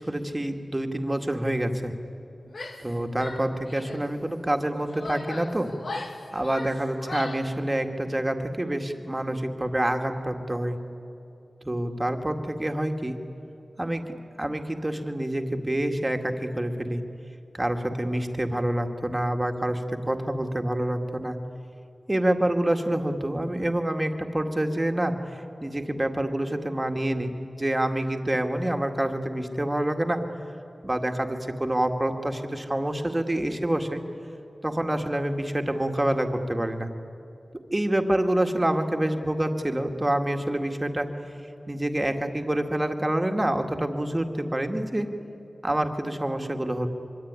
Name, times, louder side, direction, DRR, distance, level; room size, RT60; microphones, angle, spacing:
voice 1, 0.0-1.9 2.8-5.7 6.3-10.8 11.6-13.2 13.8-14.0 14.4-17.0 17.5-21.4 22.1-30.2 30.8-34.0 34.6-36.9 37.7-41.1 41.7-45.1 45.6-46.9, right 1 dB, 20° right, 5 dB, 2.1 m, -27 dB
Female speech woman speaking / Yell, 2.5-2.9 3.2-4.1 4.7-7.5, left 2 dB, 85° left, 2.4 m, -38 dB
24.5 x 24.0 x 9.8 m, 2.7 s
wide cardioid pair, 90°, 0 cm